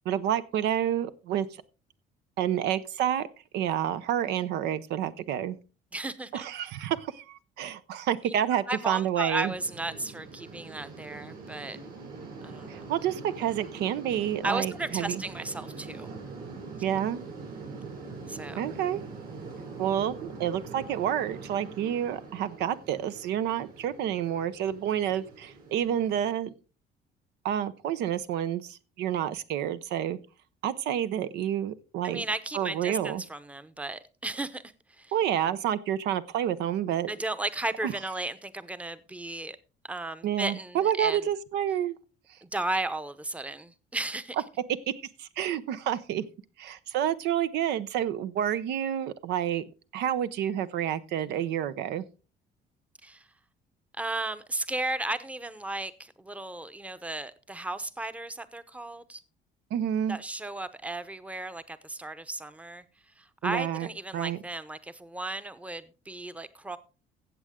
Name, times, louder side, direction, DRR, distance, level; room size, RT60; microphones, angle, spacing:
voice 1, 0.1-1.5 2.4-3.3 3.5-5.6 6.3-9.5 12.7-15.2 16.8-17.2 18.6-19.0 19.8-26.5 27.4-30.2 30.6-32.2 32.5-33.2 35.1-37.1 37.8-37.9 40.2-42.0 44.9-46.2 46.6-49.6 49.9-52.0 59.7-60.2 63.4-63.9 64.1-64.4, right 10 dB, 80° right, 0.7 m, -29 dB
voice 2, 5.9-6.5 8.2-8.3 8.7-11.8 12.4-12.9 14.4-16.1 18.3-18.6 32.0-34.6 34.9-35.1 37.1-39.6 39.8-41.3 42.4-44.4 53.0-53.3 54.0-59.2 60.1-62.8 63.2-66.8, right 2 dB, 10° right, 0.8 m, -35 dB
sound 1, 9.5-26.3, right 4 dB, 65° right, 7.7 m, -43 dB
15.0 x 7.6 x 3.7 m
cardioid pair, 110°, 17 cm